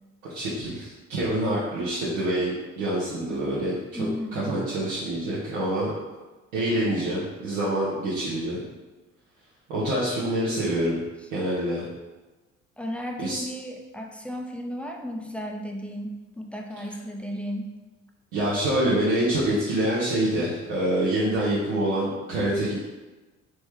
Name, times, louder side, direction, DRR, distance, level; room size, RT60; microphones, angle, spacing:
voice 1, 0.2-5.9 6.5-8.6 9.7-11.0 11.3-11.8 13.2-13.4 18.3-22.9, right 1 dB, 80° right, -9 dB, 0.8 m, -26 dB
voice 2, 3.9-4.6 10.3-10.6 12.8-17.7, equal, 5° left, 1 dB, 0.4 m, -34 dB
3.1 x 3.1 x 3.3 m, 1.2 s
hypercardioid pair, 50°, 38 cm